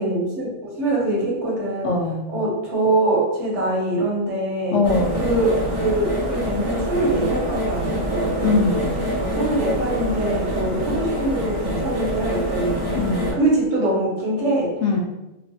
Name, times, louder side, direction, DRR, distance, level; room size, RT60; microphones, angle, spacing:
voice 1, 0.0-1.9 2.3-4.8 5.2-8.8 9.2-13.0 13.4-14.8, right 2 dB, 70° right, -5 dB, 1.3 m, -23 dB
voice 2, 1.8-2.2 4.7-5.2 8.4-8.9 12.9-13.4 14.8-15.0, left 4 dB, 80° left, 1 dB, 0.9 m, -21 dB
sound 1, 4.8-13.3, right 1 dB, 35° right, 0.7 m, -25 dB
3.1 x 2.1 x 2.6 m, 1.0 s
omnidirectional pair, 1.2 m